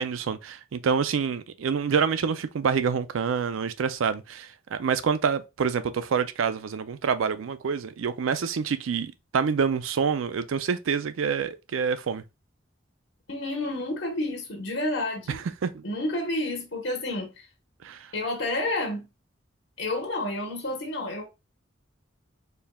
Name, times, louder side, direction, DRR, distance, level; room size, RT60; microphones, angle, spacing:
voice 1, 0.0-12.2 15.3-15.8 17.8-18.1, right 6 dB, 90° right, 0.4 m, -27 dB
voice 2, 13.3-15.4 15.8-17.5 18.1-19.1 19.8-21.3, left 2 dB, 75° left, 1.1 m, -30 dB
4.4 x 3.4 x 2.2 m
head